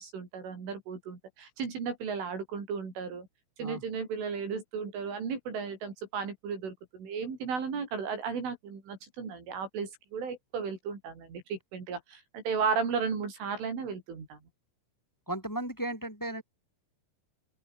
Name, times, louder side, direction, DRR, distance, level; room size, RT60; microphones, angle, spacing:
voice 1, 0.0-3.3 3.6-14.4, right 5 dB, 70° right, 8.3 m, -35 dB
voice 2, 15.3-16.4, right 1 dB, 5° left, 7.2 m, -35 dB
open air
omnidirectional pair, 5.9 m